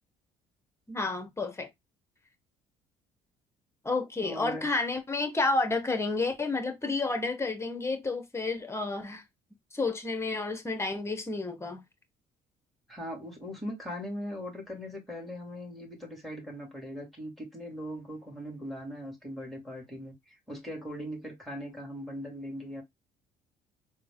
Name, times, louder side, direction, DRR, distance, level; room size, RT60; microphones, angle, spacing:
voice 1, 0.9-1.7 3.8-9.2 9.7-11.8, left 3 dB, 15° left, 1.1 m, -30 dB
voice 2, 4.2-4.7 12.9-22.8, equal, ahead, 2.2 m, -40 dB
3.9 x 2.2 x 3.7 m
hypercardioid pair, 65°, 16 cm